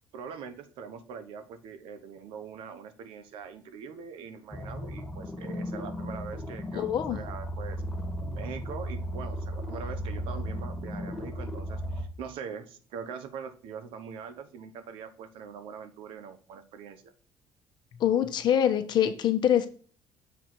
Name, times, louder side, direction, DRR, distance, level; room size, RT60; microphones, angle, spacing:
voice 1, 0.1-7.8 8.2-17.1, right 6 dB, 85° right, 9 dB, 1.0 m, -42 dB
sound 1, 4.5-12.1, equal, 10° left, 1.4 m, -35 dB
voice 2, 6.7-7.2 18.0-19.7, left 10 dB, 55° left, 8 dB, 1.0 m, -24 dB
7.1 x 4.0 x 4.6 m, 0.41 s
cardioid pair, 125°, 9 cm